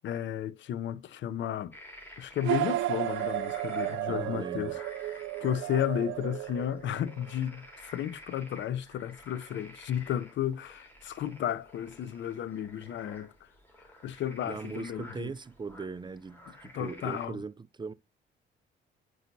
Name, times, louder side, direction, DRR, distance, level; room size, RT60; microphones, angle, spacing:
voice 1, 0.0-1.7 2.2-4.8 5.1-13.3 14.0-15.3 16.7-17.4, left 10 dB, 70° left, 0.6 m, -33 dB
sound 1, 1.7-17.3, equal, 10° left, 3.5 m, -52 dB
sound 2, 2.4-7.3, right 14 dB, 80° right, 0.5 m, -33 dB
voice 2, 4.1-4.8 14.4-17.9, right 4 dB, 25° right, 0.5 m, -40 dB
9.2 x 6.0 x 2.6 m
cardioid pair, 90°, 20 cm